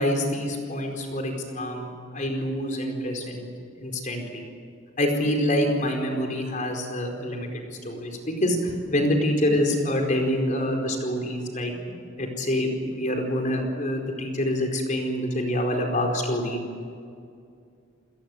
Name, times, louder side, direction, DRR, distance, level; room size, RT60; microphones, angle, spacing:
voice 1, 0.0-3.5 3.8-4.4 5.0-11.8 12.2-16.6, left 1 dB, 40° left, 2 dB, 4.6 m, -26 dB
26.5 x 19.5 x 8.0 m, 2.4 s
head